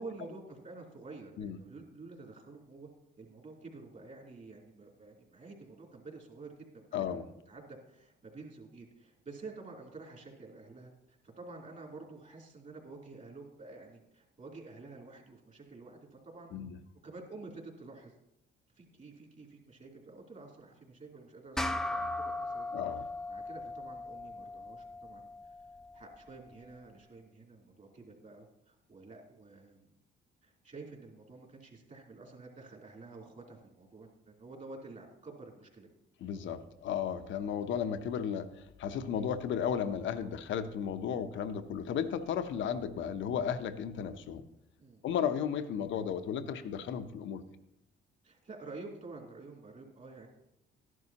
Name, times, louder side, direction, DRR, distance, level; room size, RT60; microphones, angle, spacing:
voice 1, 0.0-2.9 3.2-7.2 7.5-16.5 17.0-18.1 18.8-21.6 21.9-22.6 22.9-25.6 25.9-29.9 30.4-35.9 44.8-45.0 48.2-50.3, right 3 dB, 40° right, 0 dB, 3.0 m, -49 dB
voice 2, 6.9-7.2 16.5-16.8 22.7-23.0 36.2-44.4 45.0-47.4, left 8 dB, 75° left, 10 dB, 0.8 m, -34 dB
sound 1, 21.6-26.3, left 2 dB, ahead, 0.5 m, -38 dB
13.0 x 11.0 x 2.9 m, 0.84 s
cardioid pair, 90°, 20 cm